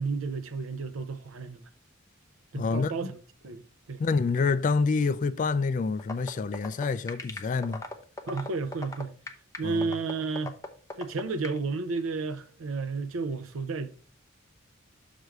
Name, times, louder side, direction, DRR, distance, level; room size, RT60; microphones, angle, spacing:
voice 1, 0.0-1.6 2.5-3.2 3.4-4.0 8.3-9.1 9.6-10.6 11.0-14.0, right 4 dB, 90° right, 0.6 m, -32 dB
voice 2, 2.5-3.1 4.0-7.8 9.6-9.9, left 4 dB, 40° left, 0.3 m, -27 dB
sound 1, 6.0-11.6, left 3 dB, 15° left, 0.7 m, -37 dB
6.6 x 5.0 x 4.5 m
head